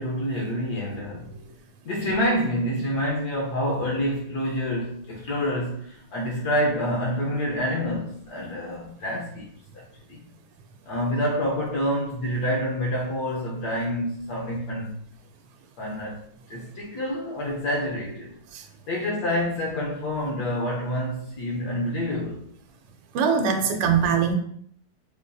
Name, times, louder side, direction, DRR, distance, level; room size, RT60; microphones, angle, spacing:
voice 1, 0.0-1.3 1.8-9.5 9.7-10.2 10.9-15.0 15.8-16.2 16.5-18.3 18.9-22.5, equal, 65° left, -3 dB, 1.0 m, -27 dB
voice 2, 23.1-24.4, right 6 dB, 85° right, 4 dB, 1.5 m, -22 dB
5.1 x 2.5 x 2.3 m, 0.65 s
omnidirectional pair, 2.3 m